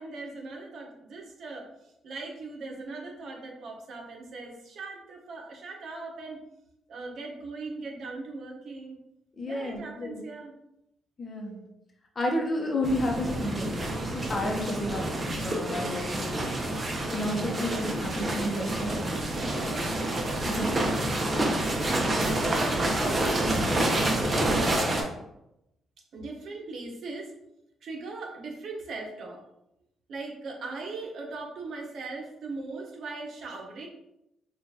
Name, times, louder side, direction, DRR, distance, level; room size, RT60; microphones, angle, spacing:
voice 1, 0.0-6.4 6.9-9.0 9.5-10.5 11.4-11.7 17.3-17.9 19.3-20.0 22.2-23.8 24.6-25.1 26.1-27.3 27.8-29.4 30.1-33.9, right 3 dB, 65° right, 1 dB, 1.0 m, -40 dB
voice 2, 9.4-10.2 11.2-11.6 12.2-16.3 17.1-19.1 20.4-20.8, left 1 dB, 35° left, 1 dB, 0.8 m, -31 dB
sound 1, 12.8-25.0, right 1 dB, 30° right, 0.8 m, -28 dB
5.3 x 2.5 x 2.8 m, 0.84 s
cardioid pair, 90°, 0 cm